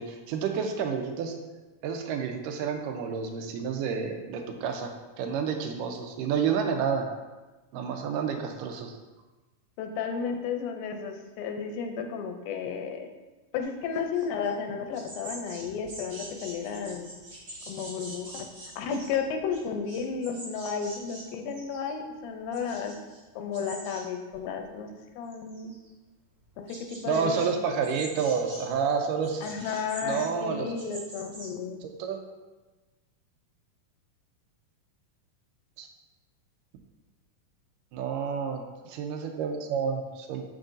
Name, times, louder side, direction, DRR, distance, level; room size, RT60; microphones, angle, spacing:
voice 1, 0.0-1.3 1.8-7.1 7.7-9.0 27.1-29.5 30.0-30.7 31.8-32.2 35.8-35.9 37.9-40.4, right 6 dB, 80° right, 4 dB, 2.1 m, -30 dB
voice 2, 9.8-13.1 13.5-17.1 17.7-18.5 18.8-23.0 23.4-24.9 25.2-25.7 26.6-27.5 29.4-31.8, left 6 dB, 90° left, 5 dB, 2.4 m, -33 dB
sound 1, 13.6-14.5 14.8-21.9 22.2-23.2 23.5-24.1 24.3-24.9 25.3-25.9 26.4-27.5 27.8-28.7 29.2-31.5, right 1 dB, 40° right, 1.5 m, -45 dB
6.3 x 6.2 x 2.6 m, 1.2 s
omnidirectional pair, 4.0 m